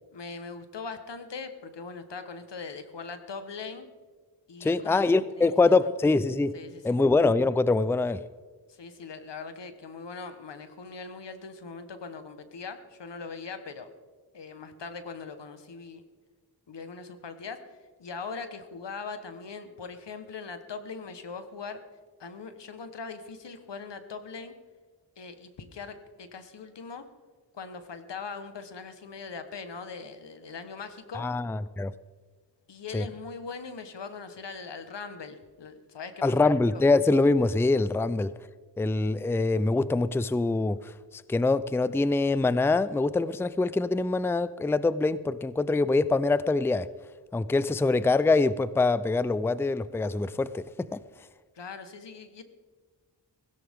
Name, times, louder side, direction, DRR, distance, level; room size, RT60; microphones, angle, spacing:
voice 1, 0.1-3.9 4.5-5.1 5.4-5.7 6.5-7.0 8.7-13.9 14.3-16.0 16.7-17.6 18.0-21.8 22.2-24.5 25.2-27.0 27.5-31.3 32.7-36.8 51.5-52.4, left 4 dB, 85° left, 9 dB, 1.3 m, -41 dB
voice 2, 4.6-6.6 6.8-8.2 31.1-31.9 32.9-33.1 36.2-38.3 38.8-46.9 47.3-51.0, left 3 dB, 5° left, 16 dB, 0.4 m, -24 dB
17.0 x 16.5 x 3.6 m, 1.5 s
wide cardioid pair, 65°, 41 cm